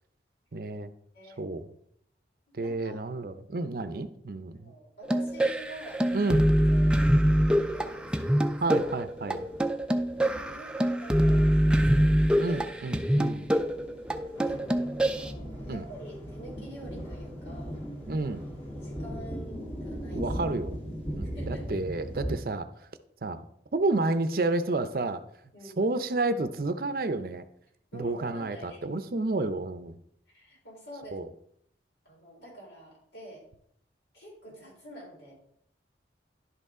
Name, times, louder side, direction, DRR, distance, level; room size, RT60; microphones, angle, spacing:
voice 1, 0.5-0.9 1.4-1.7 2.5-4.7 6.1-6.5 8.6-9.4 12.4-13.5 15.7-15.8 18.1-18.5 20.1-20.8 21.1-22.7 23.2-23.4 23.7-25.2 25.8-27.4 27.9-30.0 31.1-31.3, right 2 dB, 55° right, 11 dB, 0.5 m, -30 dB
voice 2, 2.5-3.1 4.5-6.2 6.7-8.6 10.2-12.6 14.3-17.8 18.7-20.3 21.3-21.8 25.5-25.8 27.9-28.8 30.3-31.2 32.0-33.4 34.1-35.3, right 1 dB, 80° left, -3 dB, 4.0 m, -47 dB
sound 1, 5.0-15.3, equal, 5° right, 0.3 m, -25 dB
sound 2, 5.3-5.4 5.7-22.4, equal, 35° left, 1.9 m, -40 dB
Drum, 14.3-19.4, left 1 dB, 20° left, 1.6 m, -46 dB
11.0 x 5.5 x 3.7 m, 0.69 s
head